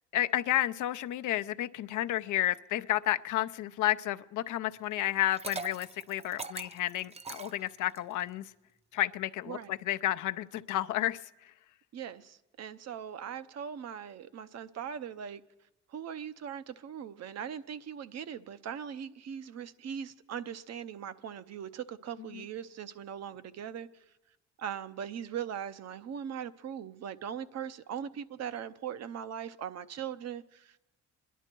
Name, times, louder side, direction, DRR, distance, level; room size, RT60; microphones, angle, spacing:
voice 1, 0.1-8.4 8.9-11.2 22.3-22.4, left 14 dB, 80° left, 0.6 m, -31 dB
Liquid, 5.1-8.2, right 4 dB, 20° right, 0.6 m, -42 dB
voice 2, 11.9-15.4 15.9-23.9 24.6-30.8, right 8 dB, 60° right, 0.7 m, -40 dB
27.5 x 11.0 x 4.5 m
cardioid pair, 90°, 30 cm